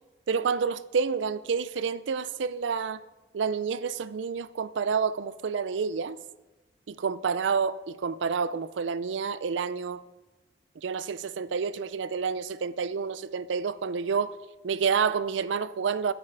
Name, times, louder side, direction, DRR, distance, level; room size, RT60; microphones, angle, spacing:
voice 1, 0.3-3.0 3.3-6.2 6.9-10.0 10.8-14.3 14.6-16.1, right 5 dB, 80° right, 0.4 m, -29 dB
10.5 x 9.0 x 4.7 m
head